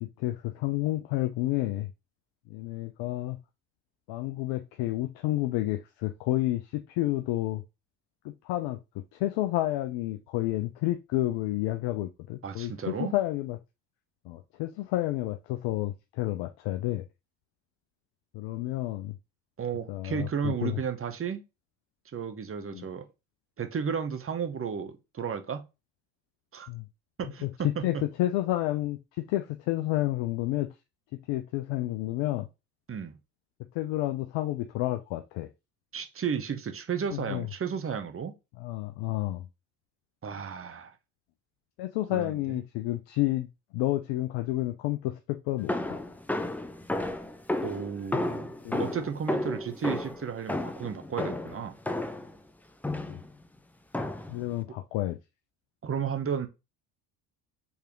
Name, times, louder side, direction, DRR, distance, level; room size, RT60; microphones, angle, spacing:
voice 1, 0.0-1.9 2.5-3.4 4.1-7.6 8.2-13.6 14.2-17.0 18.3-19.2 19.9-20.8 22.7-22.9 26.7-26.9 27.4-30.7 31.1-32.5 33.7-35.5 37.1-37.5 38.6-39.5 41.8-46.0 48.6-48.9 53.1-53.2 54.3-55.2, left 16 dB, 65° left, 0.6 m, -30 dB
voice 2, 12.4-13.1 19.6-21.4 22.1-23.0 23.6-25.6 26.5-26.7 27.2-27.9 32.9-33.2 35.9-38.3 40.2-40.9 42.1-42.3 47.6-48.5 48.8-51.7 55.8-56.5, right 7 dB, 25° right, 1.0 m, -33 dB
sound 1, 45.7-52.3 52.8-53.3 53.9-54.4, left 1 dB, 5° left, 0.4 m, -32 dB
4.8 x 3.4 x 3.0 m
hypercardioid pair, 65°, 48 cm